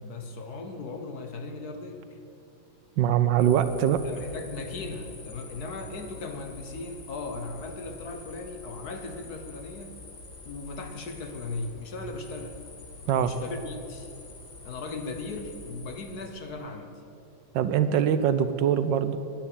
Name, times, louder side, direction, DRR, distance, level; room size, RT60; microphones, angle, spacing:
voice 1, 0.0-2.2 4.0-9.9 10.4-12.6 13.0-14.1 14.6-16.9, left 3 dB, 55° left, 6 dB, 1.5 m, -37 dB
voice 2, 3.0-4.0 13.1-13.3 17.5-19.2, right 9 dB, 75° right, 11 dB, 1.3 m, -23 dB
sound 1, 3.4-16.3, left 3 dB, 90° left, 2.8 m, -46 dB
10.5 x 10.0 x 8.7 m, 2.5 s
omnidirectional pair, 2.1 m